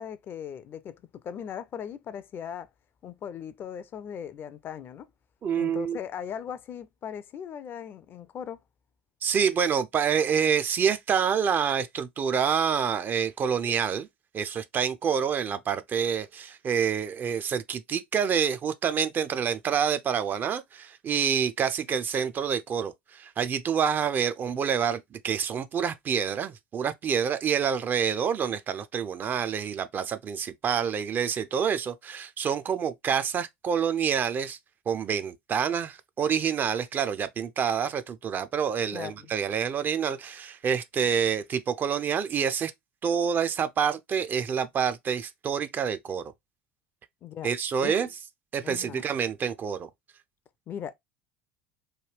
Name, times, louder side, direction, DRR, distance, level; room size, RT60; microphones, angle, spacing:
voice 1, 0.0-2.7 3.0-5.1 5.5-8.6 38.9-39.3 47.2-47.5 47.8-47.9 48.6-49.0 50.7-50.9, left 8 dB, 40° left, 0.4 m, -38 dB
voice 2, 5.4-6.0 9.2-14.1 14.3-34.6 34.9-42.7 43.0-46.3 47.4-48.1 48.5-49.9, right 7 dB, 35° right, 0.4 m, -27 dB
3.2 x 2.2 x 3.2 m
figure-of-eight pair, 70°, 6 cm